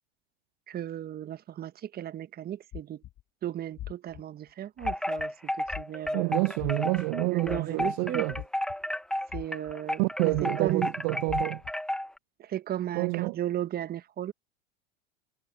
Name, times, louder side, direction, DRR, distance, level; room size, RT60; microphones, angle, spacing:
voice 1, 0.7-3.0 3.4-6.5 7.3-8.3 9.3-10.0 10.4-10.9 12.4-14.3, right 11 dB, 30° right, 1.1 m, -35 dB
sound 1, 2.7-3.2 3.8-4.2 4.8-5.3 5.7-6.1 6.6-7.0 7.4-7.9 8.3-8.9 9.3-9.7 10.3-10.7 11.3-11.7, left 14 dB, 40° left, 3.3 m, -40 dB
Wind chime, 4.8-12.2, left 1 dB, ahead, 1.1 m, -32 dB
voice 2, 6.1-8.3 10.0-11.6 12.9-13.4, right 31 dB, 50° right, 0.7 m, -28 dB
hypercardioid pair, 95°, 33 cm